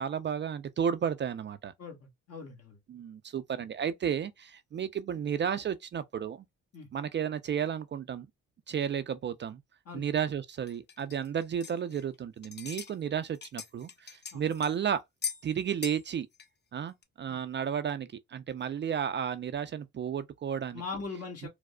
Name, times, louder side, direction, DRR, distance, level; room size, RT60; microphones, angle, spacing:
voice 1, 0.0-1.7 2.9-6.4 6.9-8.3 8.7-9.6 9.9-15.0 15.4-16.3 16.7-20.8 21.4-21.5, right 8 dB, 40° right, 0.4 m, -33 dB
voice 2, 1.8-2.8 6.7-6.9 9.8-10.0 14.3-14.4 17.3-17.4 20.7-21.5, left 4 dB, 55° left, 1.4 m, -41 dB
sound 1, 10.7-12.2 12.4-12.9 13.2-14.8 15.2-15.5 15.8-16.1 16.3-16.5 17.0-17.1, left 7 dB, 35° left, 0.6 m, -40 dB
4.7 x 2.0 x 2.2 m
cardioid pair, 90°, 30 cm